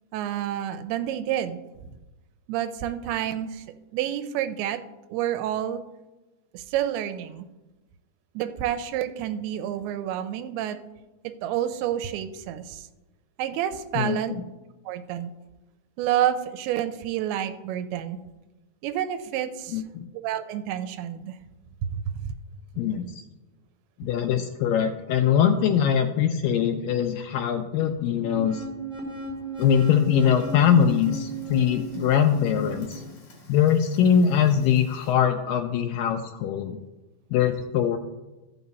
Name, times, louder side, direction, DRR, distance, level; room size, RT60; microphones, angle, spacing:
voice 1, 0.1-1.6 2.5-3.7 3.9-4.8 5.1-5.8 6.5-7.5 8.4-10.8 11.2-12.9 13.4-14.3 14.9-15.3 16.0-18.2 18.8-19.8 20.2-21.4 21.8-22.3, right 11 dB, 85° right, 10 dB, 2.6 m, -29 dB
voice 2, 14.0-14.4 19.7-20.1 22.8-23.2 24.0-28.6 29.6-33.0 33.5-36.8 37.3-38.0, left 8 dB, 85° left, 6 dB, 1.9 m, -22 dB
sound 1, 27.8-33.0, right 2 dB, ahead, 1.6 m, -36 dB
Fire, 29.6-35.1, left 2 dB, 40° left, 2.4 m, -49 dB
14.0 x 5.8 x 4.1 m, 1.1 s
omnidirectional pair, 4.5 m